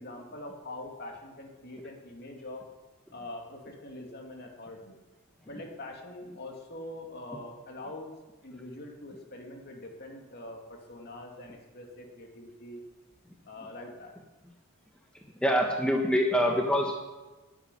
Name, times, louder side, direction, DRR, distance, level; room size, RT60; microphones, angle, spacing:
voice 1, 0.0-2.6 3.1-5.0 5.4-8.1 8.4-12.8 13.4-14.1, left 1 dB, 50° left, 1 dB, 2.6 m, -43 dB
voice 2, 15.4-16.9, equal, 5° left, 0 dB, 1.3 m, -25 dB
12.0 x 8.7 x 9.9 m, 1.2 s
head